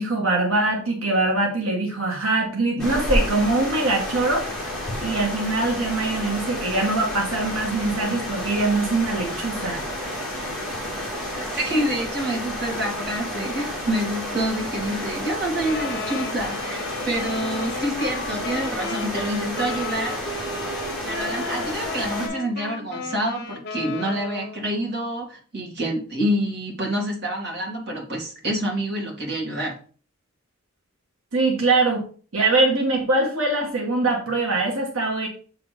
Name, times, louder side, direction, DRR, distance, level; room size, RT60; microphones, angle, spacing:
voice 1, 0.0-4.6 5.0-9.8 31.3-32.0 32.3-35.3, right 2 dB, 75° right, -1 dB, 1.6 m, -23 dB
sound 1, 2.8-22.3, left 1 dB, ahead, 2.0 m, -30 dB
voice 2, 11.4-20.2 21.0-29.8, right 1 dB, 50° right, -1 dB, 2.1 m, -27 dB
Wind instrument woodwind instrument, 15.6-24.7, left 3 dB, 50° left, 0.9 m, -34 dB
7.6 x 3.5 x 4.9 m, 0.40 s
head